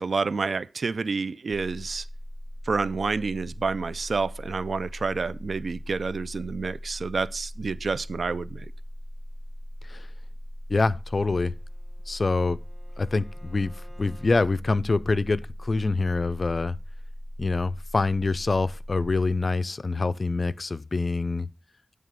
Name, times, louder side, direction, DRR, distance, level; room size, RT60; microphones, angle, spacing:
voice 1, 0.0-2.1 2.7-8.7, right 4 dB, 80° right, 0.3 m, -29 dB
sound 1, 1.5-19.4, equal, 5° right, 1.1 m, -40 dB
voice 2, 10.7-11.5 12.1-12.6 13.0-16.8 17.4-21.5, left 3 dB, 55° left, 0.4 m, -25 dB
Bowed string instrument, 11.2-14.4, right 1 dB, 30° right, 2.1 m, -56 dB
9.1 x 3.3 x 6.4 m
wide cardioid pair, 65°, 0 cm